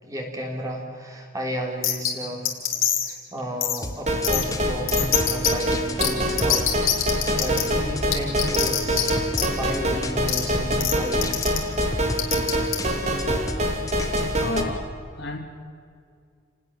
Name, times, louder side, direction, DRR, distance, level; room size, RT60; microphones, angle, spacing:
voice 1, 0.0-2.5 3.0-6.8 7.3-9.1 9.4-11.4, equal, 15° right, 1 dB, 3.7 m, -33 dB
sound 1, 1.8-2.1 2.5-3.1 3.6-3.8 4.2-4.4 4.9-5.5 6.0-6.1 6.4-7.6 8.1-9.1 9.3-9.5 10.3-10.4 10.8-10.9 11.2-11.6 12.2-12.8, left 11 dB, 90° left, 3.7 m, -23 dB
sound 2, 3.8-14.8, left 2 dB, 15° left, 1.4 m, -35 dB
sound 3, 4.1-14.6, equal, 35° right, 3.0 m, -25 dB
voice 2, 14.4-15.4, left 2 dB, 55° left, 2 dB, 3.5 m, -32 dB
29.0 x 19.5 x 7.5 m, 2.2 s
head